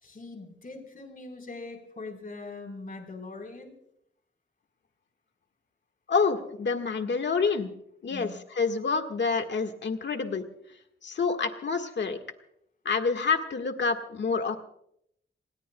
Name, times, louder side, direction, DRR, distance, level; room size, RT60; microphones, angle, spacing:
voice 1, 0.0-3.7 8.1-8.3, left 3 dB, 45° left, 4 dB, 4.3 m, -41 dB
voice 2, 6.1-7.7 8.0-10.4 11.0-12.2 12.8-14.6, left 5 dB, 60° left, 5 dB, 1.7 m, -27 dB
28.5 x 20.0 x 2.3 m, 0.74 s
wide cardioid pair, 105°, 21 cm